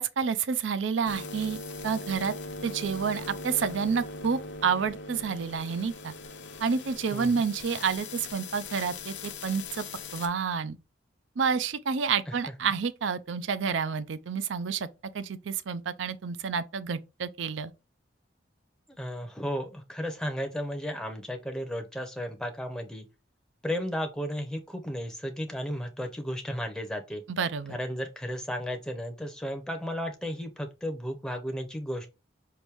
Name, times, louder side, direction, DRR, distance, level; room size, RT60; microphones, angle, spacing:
voice 1, 0.0-2.3 2.6-6.1 6.6-9.8 10.1-10.8 11.4-14.9 15.1-17.7 27.3-27.8, right 6 dB, 90° right, 0.5 m, -29 dB
sound 1, 1.0-10.3, left 3 dB, 70° left, 0.6 m, -40 dB
voice 2, 19.0-23.1 23.6-27.2 27.7-32.1, equal, 5° left, 0.6 m, -34 dB
4.6 x 2.6 x 3.3 m
head